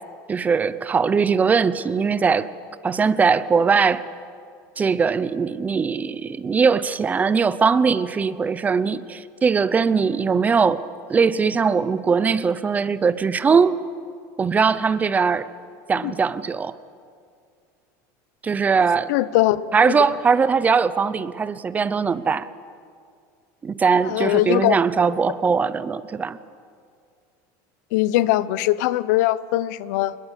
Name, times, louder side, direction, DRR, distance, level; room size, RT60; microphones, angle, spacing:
voice 1, 0.3-2.5 2.8-4.0 4.8-10.8 11.1-13.8 14.4-15.5 15.9-16.7 18.4-19.1 19.7-22.5 23.6-26.4, right 5 dB, 15° right, 0.6 m, -20 dB
voice 2, 19.1-20.0 24.1-24.8 27.9-30.2, left 16 dB, 75° left, 0.9 m, -21 dB
27.0 x 21.0 x 8.3 m
supercardioid pair, 155°, 9 cm